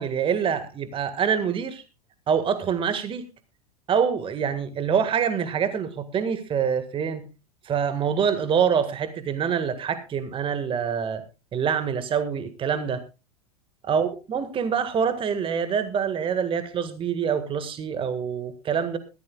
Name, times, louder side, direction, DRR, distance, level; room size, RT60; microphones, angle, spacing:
voice 1, 0.0-1.8 2.3-3.2 3.9-7.2 7.6-11.2 11.5-13.0 13.8-19.0, right 7 dB, 25° right, 11 dB, 1.7 m, -25 dB
20.5 x 14.5 x 2.3 m, 0.30 s
hypercardioid pair, 95°, 19 cm